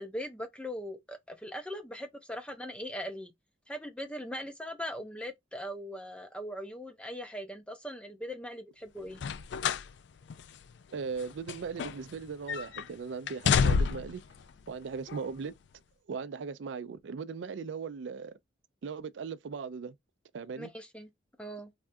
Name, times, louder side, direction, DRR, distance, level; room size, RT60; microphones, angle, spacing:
voice 1, 0.0-3.3 3.7-9.2 20.6-21.1 21.4-21.7, equal, 5° left, 0.6 m, -40 dB
sound 1, 9.1-9.9 10.3-10.4 11.2-12.2 12.5-12.8 13.3-14.2 15.1-15.2, left 6 dB, 65° left, 0.4 m, -28 dB
voice 2, 10.9-14.2 14.7-15.5 16.1-18.4 18.8-19.9 20.3-20.7, right 5 dB, 75° right, 0.4 m, -38 dB
3.4 x 2.3 x 2.5 m
head